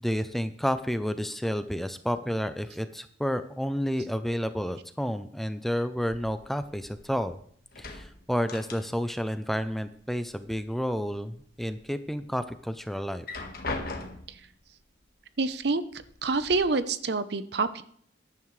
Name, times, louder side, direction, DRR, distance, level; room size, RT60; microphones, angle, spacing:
voice 1, 0.0-7.4 7.8-13.3, equal, ahead, 10 dB, 0.5 m, -30 dB
sound 1, 6.1-7.3 7.6-9.2 9.5-10.5 10.9-11.7 12.2-12.3 13.1-14.5 15.4-15.5 15.9-16.5, left 2 dB, 50° left, 1.6 m, -39 dB
voice 2, 15.4-15.8 16.2-17.8, right 3 dB, 60° right, 13 dB, 0.7 m, -27 dB
14.5 x 11.0 x 3.2 m, 0.63 s
head